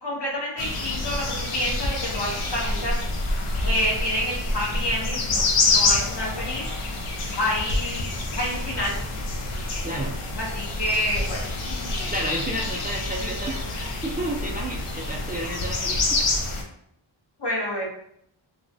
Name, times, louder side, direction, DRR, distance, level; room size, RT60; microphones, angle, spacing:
voice 1, 0.0-3.0 3.6-6.6 7.3-8.1 8.4-9.0 10.3-11.4 11.7-11.8 17.4-17.9, left 1 dB, 55° left, -3 dB, 1.0 m, -28 dB
sound 1, 0.6-16.6, left 2 dB, 90° left, 0.6 m, -27 dB
voice 2, 9.8-10.2 12.1-16.2, right 1 dB, 20° right, -2 dB, 0.4 m, -31 dB
3.1 x 2.1 x 2.6 m, 0.71 s
wide cardioid pair, 45°, 49 cm